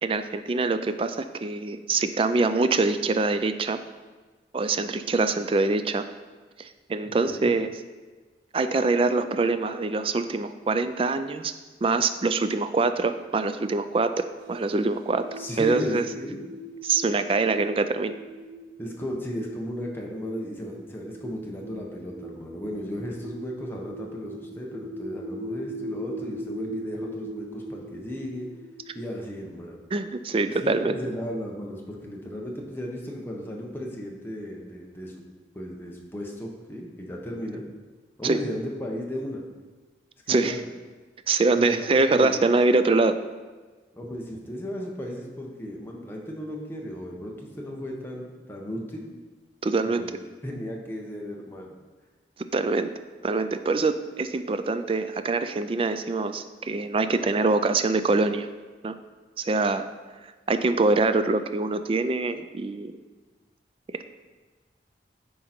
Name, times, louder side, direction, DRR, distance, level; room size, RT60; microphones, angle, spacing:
voice 1, 0.0-3.8 4.5-6.1 6.6-7.7 8.5-11.5 11.8-15.3 15.6-16.0 16.8-18.2 29.9-30.9 38.2-38.4 40.3-40.6 41.3-43.2 49.6-50.0 52.5-52.9 53.2-58.5 58.8-59.0 59.4-59.9 60.5-62.9, right 3 dB, 30° right, 10 dB, 0.3 m, -24 dB
voice 2, 7.1-7.5 15.4-16.4 18.8-28.5 28.9-29.8 30.4-35.2 35.5-37.6 38.2-39.4 40.3-40.7 41.6-42.4 43.9-49.1 49.9-50.1 50.4-51.7, equal, 10° left, -1 dB, 1.0 m, -35 dB
sound 1, 14.4-30.7, right 1 dB, 85° right, 1.4 m, -41 dB
10.0 x 3.9 x 4.4 m, 1.3 s
head